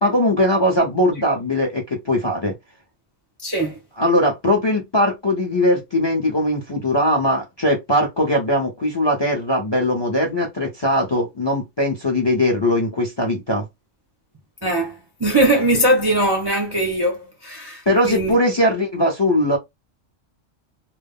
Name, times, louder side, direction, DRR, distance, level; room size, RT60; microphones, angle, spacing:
voice 1, 0.0-2.5 4.0-13.7 17.9-19.6, left 1 dB, 30° left, 0.5 m, -20 dB
voice 2, 3.4-3.8 14.6-18.4, right 1 dB, 30° right, 0.5 m, -20 dB
2.2 x 2.0 x 3.5 m
omnidirectional pair, 1.2 m